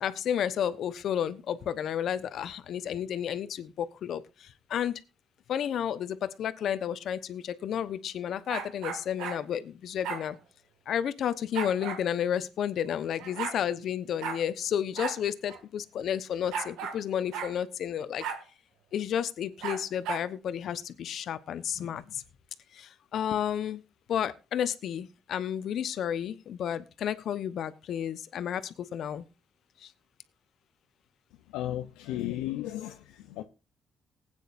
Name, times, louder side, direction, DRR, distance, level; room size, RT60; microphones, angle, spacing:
voice 1, 0.0-4.2 4.7-4.9 5.5-10.3 10.9-18.2 18.9-22.0 23.1-23.8 24.1-28.6 28.9-29.2, left 9 dB, 65° left, 1.0 m, -31 dB
sound 1, 8.5-9.4 10.0-10.2 11.5-12.0 12.9-13.0 13.2-13.6 14.2-14.4 15.0-15.2 15.5-15.6 16.5-17.0 17.3-17.5 18.2-18.4 19.6-20.3, right 7 dB, 80° right, 2.0 m, -35 dB
voice 2, 31.5-33.4, left 13 dB, 85° left, 0.6 m, -34 dB
19.5 x 9.1 x 2.6 m
hypercardioid pair, 50°, 0 cm